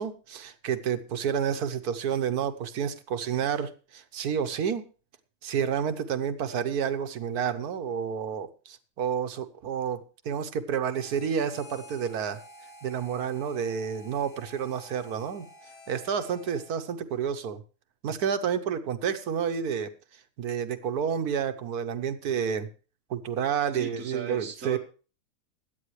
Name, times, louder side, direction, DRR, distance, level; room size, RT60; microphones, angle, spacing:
voice 1, 0.0-4.8 5.4-12.4 12.8-15.5 15.9-17.6 18.0-19.9 20.4-22.7 23.1-24.8, right 7 dB, 85° right, 9 dB, 1.5 m, -30 dB
Harmonica, 10.9-16.9, equal, 90° left, 2.9 m, -50 dB
voice 2, 23.7-24.8, right 5 dB, 60° right, 0 dB, 1.7 m, -38 dB
16.5 x 10.5 x 3.2 m, 0.36 s
omnidirectional pair, 1.6 m